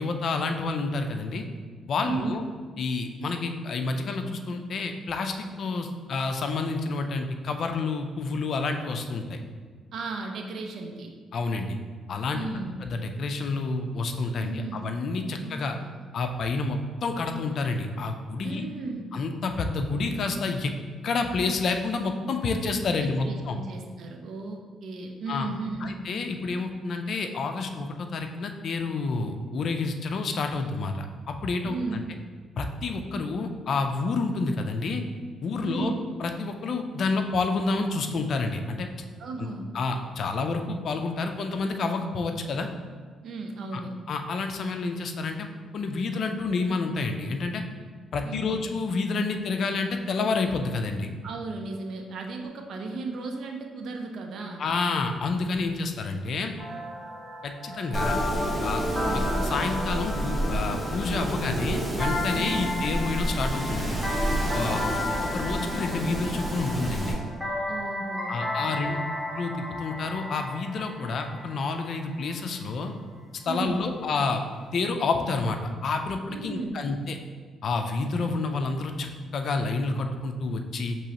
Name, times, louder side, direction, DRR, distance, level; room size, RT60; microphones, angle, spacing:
voice 1, 0.0-1.5 1.9-2.4 2.8-9.4 11.3-11.8 12.1-12.5 12.8-15.8 16.1-18.7 19.1-20.7 21.0-23.6 25.3-25.5 25.8-32.0 32.6-35.0 35.4-35.9 36.2-38.9 39.4-39.5 39.7-42.7 43.7-43.8 44.1-45.5 45.7-47.6 48.1-51.1 54.6-56.5 57.4-58.2 58.6-58.8 59.1-64.0 64.5-64.8 65.2-67.2 68.3-69.0 69.3-72.9 73.5-74.4 74.7-77.2 77.6-79.1 79.3-81.0, left 3 dB, 60° left, 5 dB, 0.4 m, -29 dB
voice 2, 2.0-2.4 9.9-11.1 12.3-12.8 14.4-14.9 15.4-15.9 18.4-19.1 23.0-25.9 31.6-32.0 35.6-36.0 39.2-39.7 43.2-43.9 48.2-48.6 51.2-54.6 58.9-59.3 62.3-62.7 64.5-65.1 67.7-69.0 73.4-73.9 76.3-76.8, right 3 dB, 65° right, 3 dB, 0.6 m, -35 dB
sound 1, 56.6-72.3, left 1 dB, 5° left, 0.9 m, -34 dB
Wind, 57.9-67.1, right 1 dB, 15° right, 1.1 m, -30 dB
6.0 x 3.0 x 2.9 m, 1.6 s
cardioid pair, 90°, 0 cm